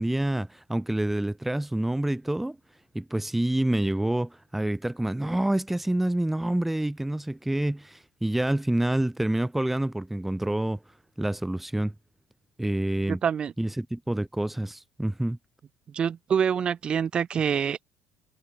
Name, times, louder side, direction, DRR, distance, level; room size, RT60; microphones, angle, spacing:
voice 1, 0.0-2.6 2.9-10.8 11.2-11.9 12.6-13.2 13.6-15.4, right 1 dB, 5° right, 2.8 m, -27 dB
voice 2, 13.1-13.5 15.9-17.9, right 7 dB, 45° right, 3.0 m, -26 dB
hypercardioid pair, 65°, 2 cm